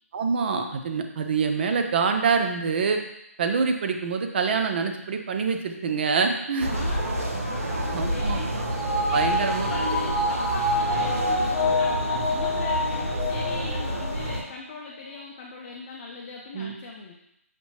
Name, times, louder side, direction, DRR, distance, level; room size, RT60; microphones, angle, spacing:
voice 1, 0.1-3.0 3.4-6.7 7.9-8.4 9.1-9.7 16.5-16.7, right 5 dB, 45° right, 5 dB, 0.5 m, -25 dB
voice 2, 6.5-8.5 8.8-17.1, left 3 dB, 35° left, -1 dB, 0.5 m, -39 dB
sound 1, 6.6-14.4, right 1 dB, 80° right, 0.9 m, -29 dB
sound 2, 7.7-14.3 14.7-14.8, left 1 dB, 5° left, 1.4 m, -28 dB
5.9 x 2.7 x 2.9 m, 0.80 s
figure-of-eight pair, 150°, 8 cm